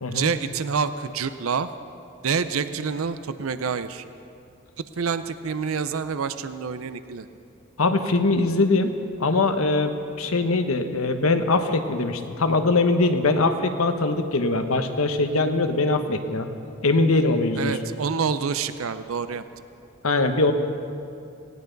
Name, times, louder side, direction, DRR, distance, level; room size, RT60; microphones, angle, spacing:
voice 1, 0.1-1.7 2.2-4.0 5.0-7.3 17.6-19.4, right 5 dB, 75° right, 12 dB, 0.6 m, -27 dB
voice 2, 7.8-8.9 9.2-16.5 16.8-17.8 20.0-20.5, left 3 dB, 85° left, 7 dB, 1.1 m, -22 dB
19.0 x 18.0 x 4.0 m, 2.5 s
head